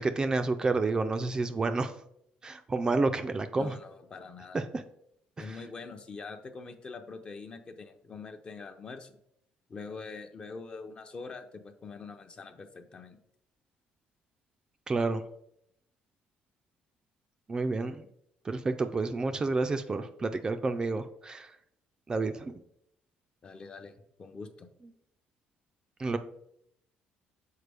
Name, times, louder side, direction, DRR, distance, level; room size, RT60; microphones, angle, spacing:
voice 1, 0.0-1.9 2.4-3.8 4.5-4.8 14.9-15.2 17.5-18.0 18.5-21.5 22.1-22.6 26.0-26.2, right 3 dB, 25° right, 8 dB, 0.3 m, -29 dB
voice 2, 3.6-4.6 5.4-9.2 9.7-13.2 23.4-24.7, left 4 dB, 30° left, 7 dB, 0.6 m, -44 dB
6.6 x 4.3 x 3.4 m, 0.74 s
cardioid pair, 120°, 3 cm